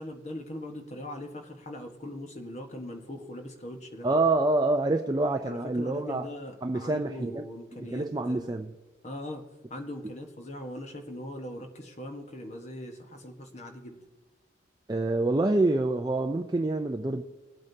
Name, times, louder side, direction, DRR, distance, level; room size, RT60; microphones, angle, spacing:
voice 1, 0.0-4.1 5.5-8.7 9.0-14.0, left 1 dB, 35° left, 1.3 m, -40 dB
voice 2, 4.0-6.3 6.6-7.4 7.9-8.7 14.9-17.2, right 2 dB, 20° right, 0.4 m, -26 dB
21.5 x 8.5 x 2.8 m
head